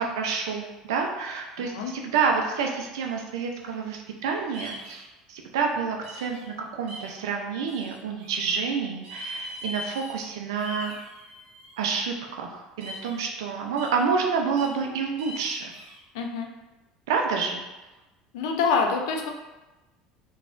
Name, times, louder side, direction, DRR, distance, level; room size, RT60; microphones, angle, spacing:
voice 1, 0.0-5.0 5.3-11.0 11.8-15.7 17.1-17.6, right 5 dB, 85° right, 2 dB, 0.4 m, -28 dB
sound 1, 4.5-5.1 6.0-6.5 6.9-7.1 7.7-8.4 9.0-10.3 10.5-11.9 12.8-13.2 13.8-14.0 14.6-14.8 15.2-16.0, equal, 55° right, 1.0 m, -40 dB
voice 2, 16.1-16.5 18.3-19.3, left 5 dB, 80° left, 3 dB, 0.4 m, -25 dB
3.4 x 2.2 x 2.4 m, 1.1 s
supercardioid pair, 85°, 2 cm